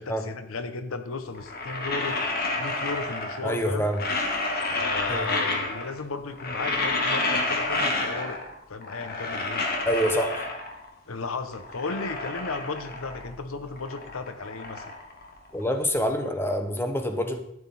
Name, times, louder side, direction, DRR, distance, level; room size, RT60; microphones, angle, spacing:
voice 1, 0.0-2.2 2.6-3.9 4.7-8.4 8.7-9.6 11.1-15.0, left 4 dB, 85° left, 10 dB, 0.9 m, -35 dB
sound 1, 1.3-3.5 3.8-6.0 6.3-8.5 8.8-10.9 11.3-13.4 13.6-15.8, left 2 dB, 50° left, 1.6 m, -30 dB
voice 2, 3.4-4.0 5.1-5.3 9.8-10.5 15.5-17.4, equal, 10° left, 6 dB, 1.0 m, -26 dB
12.0 x 9.5 x 4.2 m, 0.76 s
head